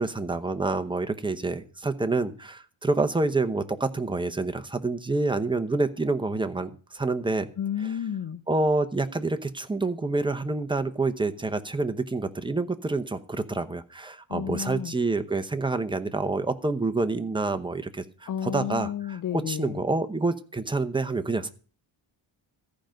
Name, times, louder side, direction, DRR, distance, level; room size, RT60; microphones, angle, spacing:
voice 1, 0.0-7.5 8.5-21.5, right 3 dB, 10° right, 8 dB, 0.8 m, -27 dB
voice 2, 7.6-8.4 14.3-14.9 18.3-19.8, left 8 dB, 45° left, 13 dB, 0.6 m, -31 dB
14.0 x 5.2 x 7.6 m, 0.39 s
wide cardioid pair, 145°, 47 cm